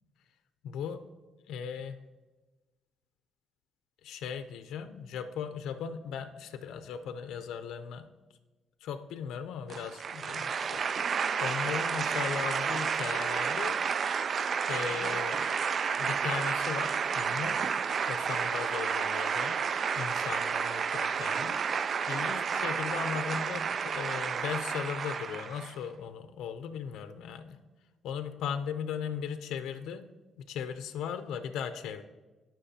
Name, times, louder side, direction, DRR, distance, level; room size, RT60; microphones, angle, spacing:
voice 1, 0.6-1.1 1.5-2.0 4.0-8.1 8.8-13.8 14.7-15.5 16.0-17.7 18.1-19.6 20.0-21.6 22.1-27.6 28.0-30.1 30.4-32.0, left 7 dB, 85° left, 9 dB, 0.5 m, -37 dB
sound 1, 9.7-25.7, right 6 dB, 50° right, 0.3 m, -31 dB
17.0 x 5.9 x 2.8 m, 1.2 s
cardioid pair, 90°, 0 cm